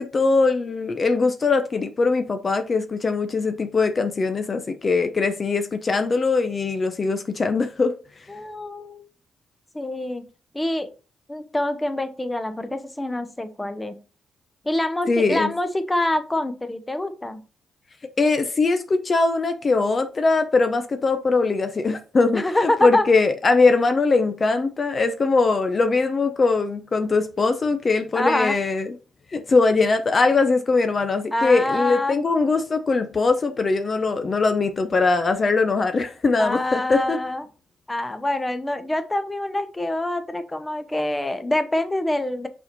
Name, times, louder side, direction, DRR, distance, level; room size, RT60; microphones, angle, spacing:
voice 1, 0.0-7.9 15.1-15.5 18.2-28.9 29.3-37.2, left 3 dB, 40° left, 0.8 m, -21 dB
voice 2, 8.3-9.1 9.7-10.3 10.5-10.9 11.3-14.0 14.6-17.4 22.3-23.1 28.1-28.6 31.3-32.1 36.4-37.4 37.9-42.5, left 1 dB, 15° left, 0.9 m, -25 dB
5.5 x 4.5 x 5.2 m
cardioid pair, 75°, 0 cm